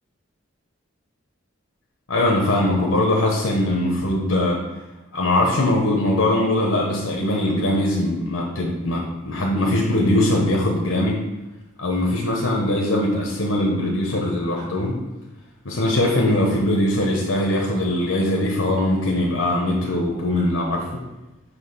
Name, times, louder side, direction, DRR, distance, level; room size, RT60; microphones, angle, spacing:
voice 1, 2.1-4.6 5.1-11.2 11.8-15.0 15.6-21.0, left 1 dB, 80° left, -2 dB, 1.0 m, -21 dB
6.3 x 2.9 x 5.5 m, 1.1 s
head